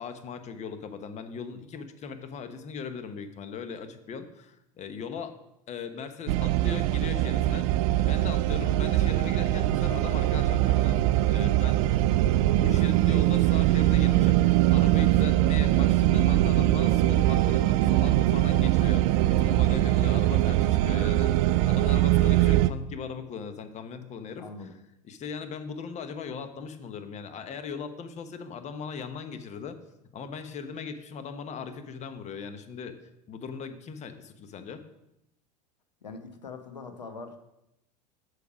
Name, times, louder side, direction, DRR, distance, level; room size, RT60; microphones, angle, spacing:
voice 1, 0.0-5.4 5.7-7.7 8.0-11.0 11.3-12.0 12.6-24.4 25.0-29.8 30.1-33.0 33.3-34.8, left 6 dB, 35° left, 9 dB, 1.0 m, -38 dB
sound 1, 6.3-22.7, right 15 dB, 55° right, 0.4 m, -22 dB
voice 2, 24.4-24.8 36.0-37.4, left 4 dB, 90° left, 6 dB, 1.0 m, -42 dB
7.0 x 6.6 x 4.9 m, 0.85 s
hypercardioid pair, 85°, 21 cm